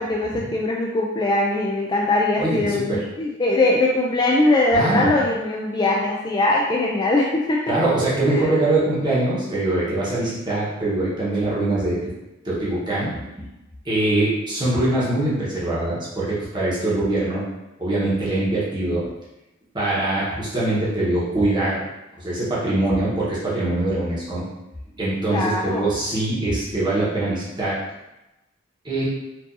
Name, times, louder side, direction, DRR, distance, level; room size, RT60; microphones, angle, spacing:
voice 1, 0.0-7.6 8.3-8.5 25.3-25.9, left 2 dB, 20° left, -2 dB, 0.3 m, -21 dB
voice 2, 2.4-3.0 4.7-5.1 7.7-12.0 12.4-13.5 13.8-17.4 17.8-19.0 19.7-21.8 22.2-24.5 24.9-27.8 28.8-29.1, right 2 dB, 25° right, -8 dB, 1.1 m, -23 dB
4.6 x 2.6 x 2.6 m, 0.97 s
head